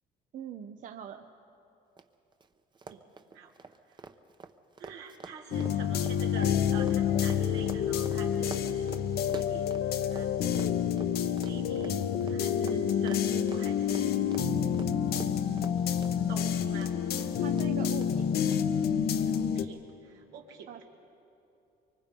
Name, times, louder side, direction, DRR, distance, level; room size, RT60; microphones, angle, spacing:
voice 1, 0.3-1.3 17.1-18.3 20.7-20.8, right 9 dB, 50° right, 7 dB, 0.8 m, -43 dB
Run, 2.0-2.1 2.3-2.5 2.7-10.3 10.5-16.9 17.2-17.7 18.0-18.1 18.5-18.6, right 4 dB, 25° right, 0.9 m, -46 dB
voice 2, 4.8-8.9 9.1-9.8 10.1-10.9 11.4-14.2 16.2-16.9 19.2-20.8, right 6 dB, 85° right, 0 dB, 2.7 m, -45 dB
sound 1, 5.5-19.7, left 8 dB, 70° left, 0.9 m, -28 dB
24.5 x 23.5 x 5.4 m, 2.8 s
cardioid pair, 110°, 17 cm